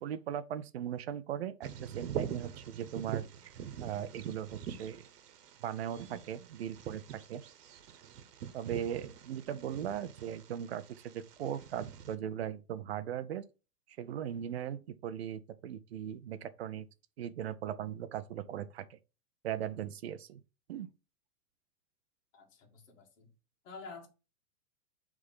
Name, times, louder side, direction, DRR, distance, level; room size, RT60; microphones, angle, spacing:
voice 1, 0.0-3.5 3.8-5.1 5.6-7.0 7.3-7.4 8.5-13.4 14.0-16.9 17.2-19.0 19.4-20.4 20.7-20.9, right 10 dB, 40° right, 0.6 m, -39 dB
Bird vocalization bird call bird song, 1.6-12.1, right 9 dB, 75° right, 1.2 m, -44 dB
voice 2, 22.3-23.3 23.6-24.1, left 4 dB, 50° left, 2.4 m, -49 dB
6.6 x 3.7 x 5.6 m
supercardioid pair, 175°, 48 cm